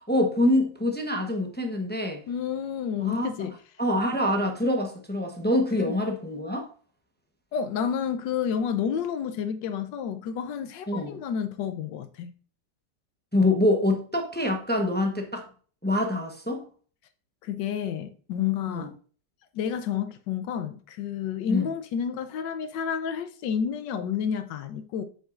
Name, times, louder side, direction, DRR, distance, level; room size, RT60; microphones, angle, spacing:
voice 1, 0.1-2.2 3.0-3.5 3.8-6.6 10.9-11.2 13.3-15.4 15.8-16.6 18.7-18.9 21.5-21.7, left 1 dB, 10° left, 0.5 m, -25 dB
voice 2, 2.3-3.5 5.8-5.9 7.5-12.3 17.4-18.9 19.5-25.0, left 7 dB, 80° left, 1.4 m, -30 dB
7.7 x 6.4 x 2.5 m
omnidirectional pair, 1.9 m